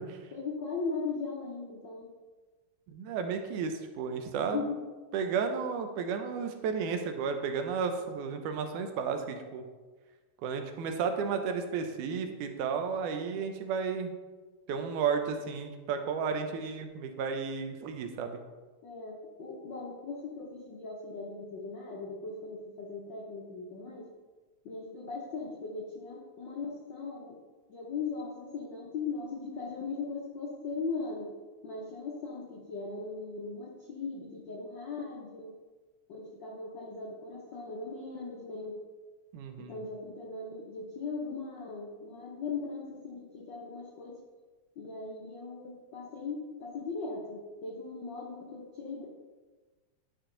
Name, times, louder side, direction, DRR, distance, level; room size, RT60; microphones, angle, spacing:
voice 1, 0.3-2.1 4.5-4.8 18.8-24.1 24.6-27.4 27.7-31.3 31.6-35.5 36.1-38.8 39.6-44.2 44.8-49.1, left 4 dB, 85° left, -2 dB, 1.0 m, -39 dB
voice 2, 2.9-4.7 5.1-9.6 10.4-14.1 14.7-18.4 39.3-39.8, right 6 dB, 85° right, 6 dB, 2.3 m, -33 dB
11.5 x 4.7 x 3.8 m, 1.3 s
omnidirectional pair, 3.4 m